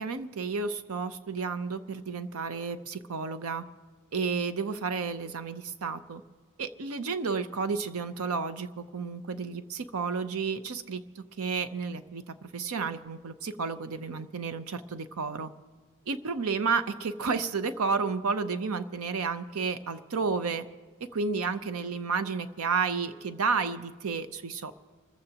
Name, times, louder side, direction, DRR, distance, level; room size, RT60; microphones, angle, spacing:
voice 1, 0.0-3.6 4.1-6.2 6.6-15.5 16.1-20.7 21.1-24.7, right 5 dB, 75° right, 11 dB, 0.7 m, -31 dB
27.5 x 14.5 x 2.9 m, 1.5 s
head